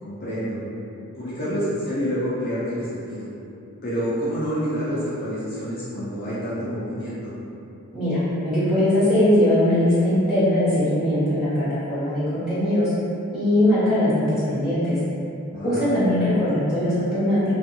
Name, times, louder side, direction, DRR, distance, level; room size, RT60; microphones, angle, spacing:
voice 1, 0.0-0.6 1.2-3.3 3.8-7.3 15.5-15.9, equal, 45° left, -11 dB, 0.5 m, -28 dB
voice 2, 7.9-12.9 13.3-15.0 15.6-17.4, left 1 dB, 5° right, -15 dB, 1.2 m, -20 dB
2.5 x 2.4 x 2.7 m, 2.7 s
head